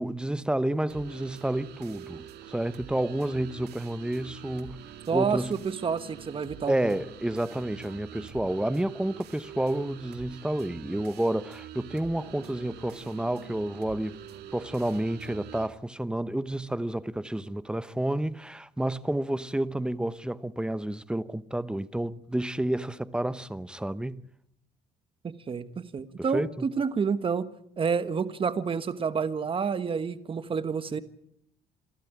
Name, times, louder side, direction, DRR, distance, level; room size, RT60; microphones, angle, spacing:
voice 1, 0.0-4.8 5.1-5.5 6.7-14.2 14.5-24.2 26.2-26.7, right 1 dB, 5° right, 0.8 m, -30 dB
sound 1, 0.9-15.7, right 10 dB, 75° right, 2.2 m, -46 dB
voice 2, 5.1-6.7 25.2-27.5 27.8-31.0, right 6 dB, 30° right, 1.4 m, -29 dB
28.0 x 13.0 x 8.9 m
cardioid pair, 110°, 17 cm